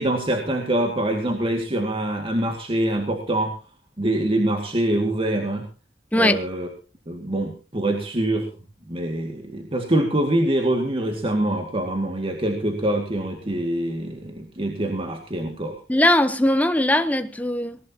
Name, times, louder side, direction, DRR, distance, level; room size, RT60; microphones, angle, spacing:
voice 1, 0.0-3.5 4.0-5.7 6.1-6.7 7.1-8.5 8.9-15.8, right 1 dB, 30° right, 2.2 m, -24 dB
voice 2, 15.9-17.8, left 1 dB, 10° left, 1.0 m, -20 dB
19.0 x 19.0 x 2.9 m
head